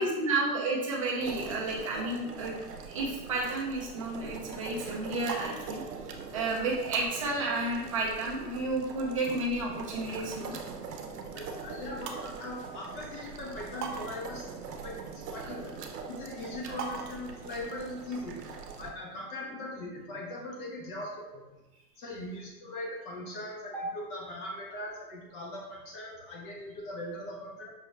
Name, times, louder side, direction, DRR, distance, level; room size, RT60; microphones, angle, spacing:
voice 1, 0.0-2.6 2.8-5.8 6.3-10.5 16.6-16.8 23.7-23.8, right 2 dB, 25° right, -3 dB, 0.3 m, -31 dB
sound 1, 1.2-18.9, right 5 dB, 70° right, 0.7 m, -41 dB
voice 2, 11.3-15.7 16.1-18.4 18.8-21.4 22.0-27.7, left 1 dB, 30° left, -1 dB, 0.7 m, -40 dB
5.4 x 2.3 x 3.1 m, 1.1 s
hypercardioid pair, 145°, 49 cm